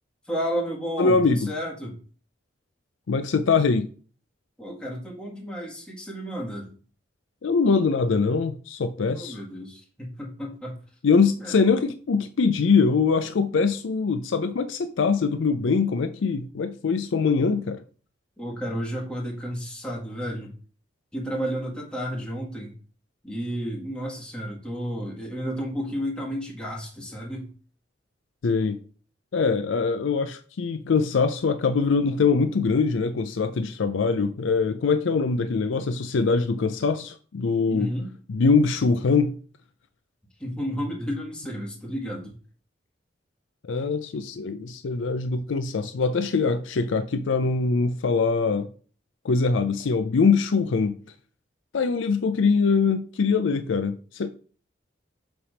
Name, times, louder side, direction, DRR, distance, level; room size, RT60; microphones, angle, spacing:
voice 1, 0.3-2.0 4.6-6.7 9.1-10.8 11.4-11.6 18.4-20.5 21.1-22.7 23.2-27.5 37.7-38.1 40.4-42.3, equal, 5° left, 1.6 m, -32 dB
voice 2, 1.0-1.5 3.1-3.9 7.4-9.4 11.0-17.8 28.4-28.8 29.3-37.9 38.3-39.4 43.6-48.7 49.2-51.0 51.7-54.3, left 4 dB, 85° left, 0.5 m, -23 dB
7.1 x 3.4 x 5.0 m
head